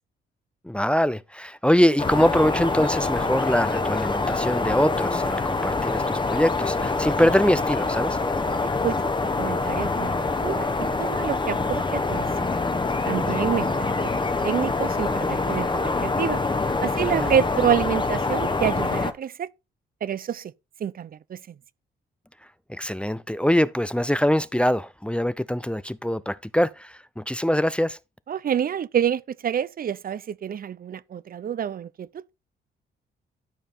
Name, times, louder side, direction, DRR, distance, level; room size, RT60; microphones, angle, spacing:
voice 1, 0.6-8.2 17.0-17.3 22.7-28.0, equal, 5° left, 0.5 m, -23 dB
sound 1, 2.0-19.1, left 3 dB, 25° left, 1.2 m, -25 dB
voice 2, 9.4-12.5 13.0-13.9 14.4-16.4 16.8-19.5 20.0-20.5 20.8-21.5 28.3-32.3, right 8 dB, 45° right, 0.5 m, -27 dB
12.5 x 5.2 x 4.3 m
cardioid pair, 70°, 20 cm